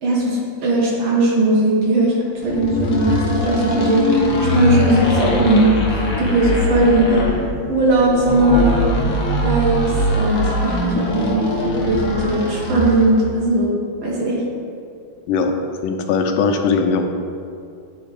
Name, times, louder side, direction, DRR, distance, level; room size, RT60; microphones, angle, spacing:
voice 1, 0.0-2.2 2.4-4.2 4.5-5.8 6.2-7.3 7.7-8.9 9.4-9.8 10.1-11.5 11.8-13.7 14.0-14.4, right 2 dB, 75° right, -4 dB, 2.1 m, -18 dB
sound 1, 2.4-13.2, left 1 dB, 55° left, 1.1 m, -21 dB
voice 2, 15.8-17.1, left 5 dB, 80° left, 5 dB, 1.3 m, -19 dB
8.7 x 3.2 x 4.9 m, 2.4 s
omnidirectional pair, 2.2 m